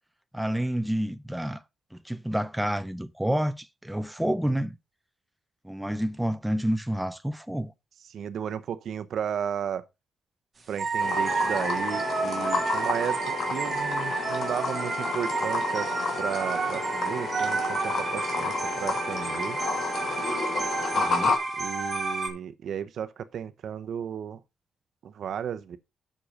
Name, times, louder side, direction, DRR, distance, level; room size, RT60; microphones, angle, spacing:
voice 1, 0.3-1.6 1.9-4.8 5.6-7.7 21.0-21.4, right 1 dB, 5° right, 0.4 m, -29 dB
voice 2, 8.1-9.9 10.7-15.9 16.2-19.6 21.6-24.4 25.0-25.8, right 8 dB, 60° right, 0.7 m, -34 dB
sound 1, 10.8-22.3, right 4 dB, 25° right, 1.6 m, -30 dB
sound 2, 11.0-21.4, left 4 dB, 55° left, 2.1 m, -31 dB
7.5 x 6.5 x 5.0 m
wide cardioid pair, 170°, 0 cm